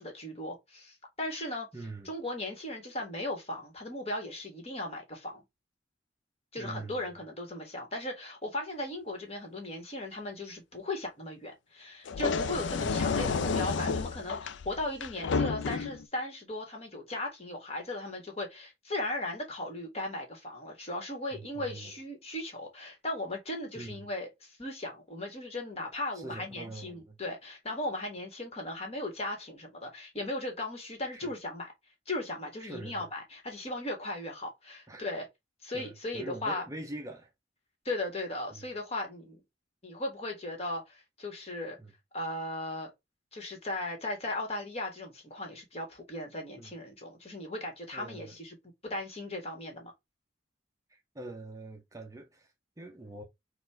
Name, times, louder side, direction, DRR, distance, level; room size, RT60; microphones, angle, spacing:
voice 1, 0.0-1.7 2.0-5.4 6.5-31.7 32.1-35.3 35.6-36.6 37.8-39.4 39.8-41.8 42.1-42.9 43.3-48.6 48.8-49.9, left 1 dB, 35° left, 1.7 m, -37 dB
voice 2, 1.7-2.1 6.6-7.2 12.8-13.1 21.3-21.9 23.7-24.1 26.1-27.2 31.1-31.3 32.6-33.1 34.9-35.0 35.7-37.3 38.5-38.7 41.8-41.9 46.6-46.7 47.9-48.4 50.9-52.5 52.8-53.2, right 2 dB, 20° right, 0.5 m, -43 dB
sound 1, 12.0-16.0, left 5 dB, 80° left, 0.4 m, -31 dB
4.2 x 2.5 x 4.3 m
head